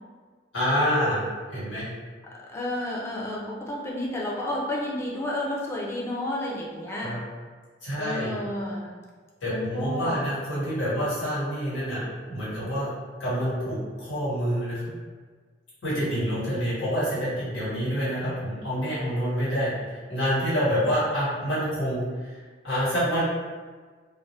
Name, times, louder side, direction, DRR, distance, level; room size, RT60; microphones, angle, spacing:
voice 1, 0.5-1.9 7.0-7.2 7.8-8.4 9.4-12.9 13.2-14.8 15.8-22.3 22.6-23.2, equal, 90° left, -10 dB, 1.4 m, -27 dB
voice 2, 2.4-7.2 8.0-8.9 9.5-10.2, left 1 dB, 15° left, -4 dB, 0.4 m, -31 dB
2.4 x 2.1 x 3.1 m, 1.5 s
head